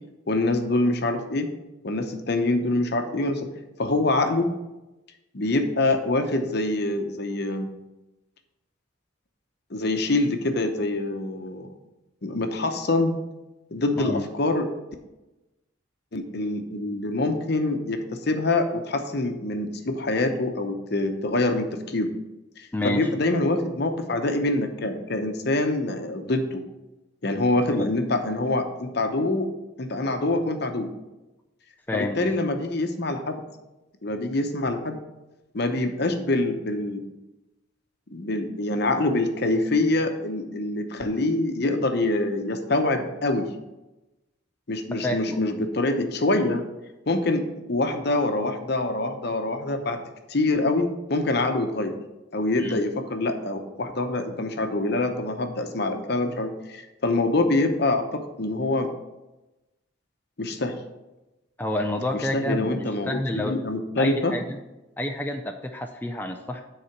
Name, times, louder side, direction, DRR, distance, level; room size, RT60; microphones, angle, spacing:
voice 1, 0.3-1.5 1.8-3.5 3.8-4.5 5.3-7.7 9.7-11.7 12.2-13.2 13.7-14.7 16.1-22.1 22.6-26.6 27.2-29.5 29.8-30.9 31.9-33.4 34.0-35.0 35.5-37.0 38.1-43.5 44.7-46.6 47.1-47.4 47.7-50.0 50.3-52.0 52.3-58.9 60.4-60.8 62.1-64.3, left 2 dB, 55° left, 6 dB, 0.9 m, -25 dB
voice 2, 22.7-23.1 27.8-27.9 31.9-32.3 45.0-45.4 52.6-52.8 61.6-63.5 64.0-64.6 65.0-66.6, left 1 dB, 10° left, 3 dB, 0.4 m, -29 dB
9.6 x 4.1 x 5.8 m, 1.0 s
head